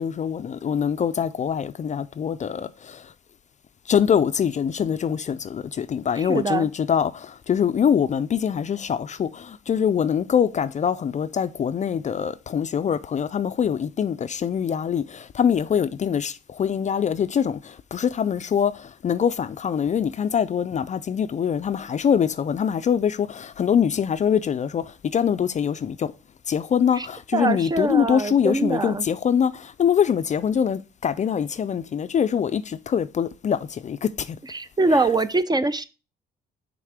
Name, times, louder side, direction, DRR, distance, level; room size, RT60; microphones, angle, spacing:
voice 1, 0.0-3.0 3.9-17.6 17.9-18.7 19.0-24.8 25.1-26.1 26.5-34.1 34.9-35.0, left 8 dB, 35° left, 0.4 m, -24 dB
voice 2, 6.2-6.7 27.0-27.1 27.3-29.1 34.5-35.8, right 3 dB, 20° right, 0.5 m, -23 dB
5.7 x 3.6 x 4.8 m
cardioid pair, 90°, 20 cm